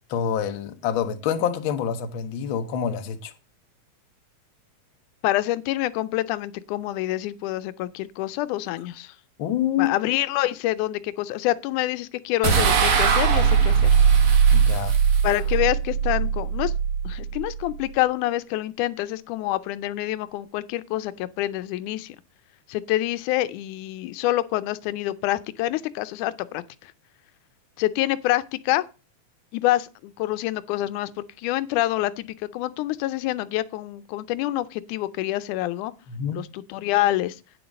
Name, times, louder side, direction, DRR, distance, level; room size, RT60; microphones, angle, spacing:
voice 1, 0.1-3.3 9.4-9.9 14.5-15.0 36.1-36.4, left 8 dB, 65° left, 1.3 m, -26 dB
voice 2, 5.2-9.1 9.8-13.9 15.2-16.7 17.0-22.2 22.7-26.9 27.8-28.8 29.5-31.1 31.4-35.9 36.3-37.4, left 15 dB, 85° left, 2.1 m, -26 dB
sound 1, 12.4-17.8, right 7 dB, 55° right, 2.1 m, -20 dB
9.3 x 7.0 x 5.2 m
omnidirectional pair, 3.5 m